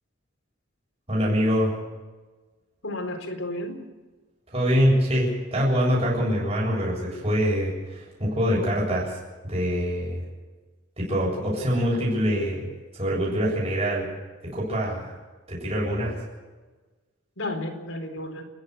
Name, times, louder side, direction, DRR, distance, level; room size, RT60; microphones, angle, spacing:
voice 1, 1.1-1.7 4.5-10.2 11.0-12.7 12.9-14.1 14.4-15.1 15.5-16.1, equal, 30° right, -4 dB, 7.6 m, -24 dB
voice 2, 2.8-3.8 17.4-18.4, left 1 dB, 75° left, 4 dB, 4.3 m, -32 dB
30.0 x 11.0 x 8.2 m, 1.3 s
head